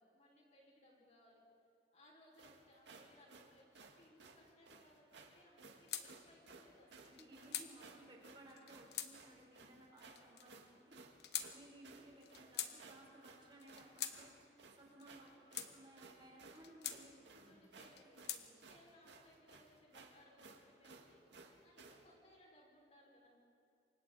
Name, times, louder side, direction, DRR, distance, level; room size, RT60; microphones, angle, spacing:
voice 1, 0.0-1.5 1.9-7.5 8.8-9.0 17.5-23.4, left 1 dB, 40° left, -3 dB, 5.3 m, -66 dB
sound 1, 2.3-22.1, right 4 dB, 85° right, 1.9 m, -59 dB
sound 2, 5.9-6.1 7.0-7.7 8.5-9.1 10.0-10.5 11.2-11.5 12.2-12.7 13.6-14.2 15.0-15.7 16.5-17.0 17.8-18.4, left 10 dB, 65° left, 1.1 m, -44 dB
voice 2, 7.1-11.1 11.5-15.3 15.7-17.7, right 1 dB, 25° right, -2 dB, 3.9 m, -60 dB
28.0 x 24.5 x 4.1 m, 2.4 s
head